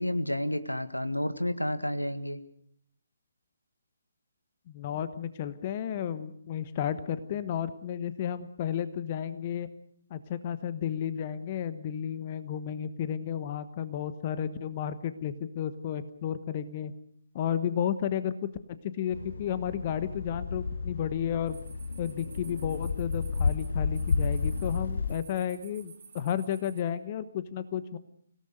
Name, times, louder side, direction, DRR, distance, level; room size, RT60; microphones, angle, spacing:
voice 1, 0.0-2.4, left 1 dB, 90° left, 11 dB, 1.8 m, -30 dB
voice 2, 4.7-9.7 10.1-16.9 17.3-18.5 18.8-21.6 22.0-28.0, left 9 dB, 30° left, 13 dB, 1.2 m, -32 dB
sound 1, 19.1-25.2, left 4 dB, 60° left, 1.1 m, -32 dB
sound 2, 21.5-26.8, right 6 dB, 45° right, 3.3 m, -53 dB
26.0 x 17.5 x 6.7 m, 0.66 s
figure-of-eight pair, 140°, 0 cm